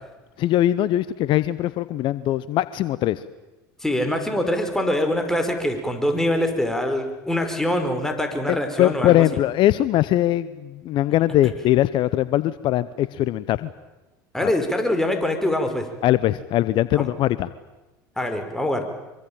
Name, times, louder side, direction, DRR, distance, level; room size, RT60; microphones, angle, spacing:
voice 1, 0.4-3.2 8.5-13.7 14.4-14.5 16.0-17.5, left 14 dB, 55° left, 16 dB, 0.9 m, -21 dB
voice 2, 3.8-9.2 14.3-15.9 16.9-17.1 18.2-18.9, left 1 dB, 5° left, 5 dB, 5.5 m, -24 dB
25.0 x 24.0 x 9.0 m, 1.1 s
hypercardioid pair, 80°, 10 cm